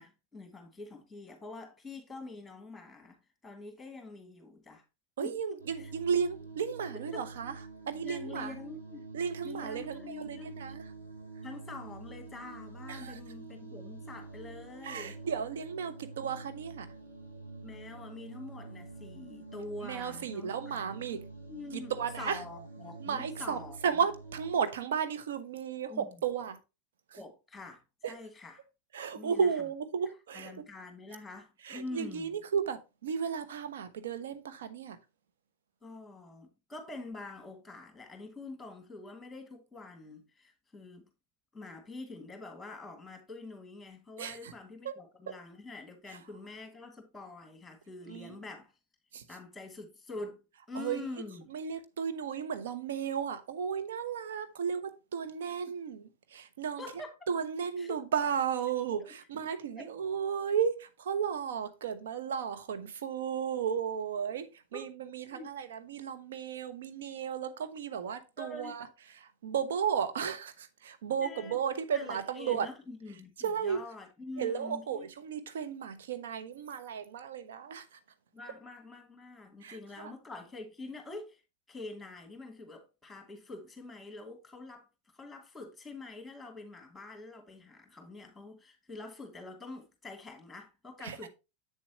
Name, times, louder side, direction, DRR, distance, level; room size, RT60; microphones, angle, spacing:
voice 1, 0.0-4.8 5.2-5.9 7.1-7.3 8.0-9.0 9.4-10.5 11.4-15.2 17.6-21.2 21.5-23.8 25.9-26.1 27.2-28.6 29.1-29.5 30.3-32.4 35.8-41.1 41.5-48.7 49.3-51.5 56.8-57.1 57.8-58.0 59.8-59.9 64.7-64.8 65.3-65.5 68.4-68.8 71.2-71.6 71.9-75.1 78.3-81.4 81.7-84.9 85.1-91.3, left 2 dB, 5° left, 2.8 m, -46 dB
voice 2, 5.2-7.5 7.9-8.6 9.1-10.8 12.9-13.2 14.8-16.9 19.8-21.2 21.7-22.4 23.0-26.6 28.0-28.2 28.9-30.5 31.6-35.0 44.2-44.5 44.8-45.0 45.3-45.4 46.1-46.2 48.1-48.4 49.1-49.2 50.7-51.1 51.5-57.0 57.3-72.7 73.4-73.8 74.4-78.0 79.6-80.1 91.0-91.2, right 7 dB, 60° right, 1.1 m, -34 dB
sound 1, 5.6-24.5, right 3 dB, 80° right, 3.4 m, -47 dB
8.0 x 7.1 x 2.9 m
figure-of-eight pair, 90°, 0 cm